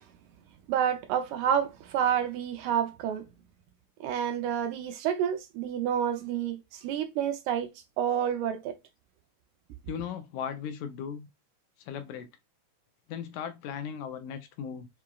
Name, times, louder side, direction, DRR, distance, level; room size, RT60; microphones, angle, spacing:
voice 1, 0.7-3.2 4.0-7.7 8.0-8.8, right 9 dB, 80° right, 1.8 m, -29 dB
voice 2, 9.9-11.3 11.8-12.3 13.1-14.9, left 8 dB, 80° left, 1.8 m, -37 dB
5.7 x 3.0 x 2.2 m
omnidirectional pair, 3.7 m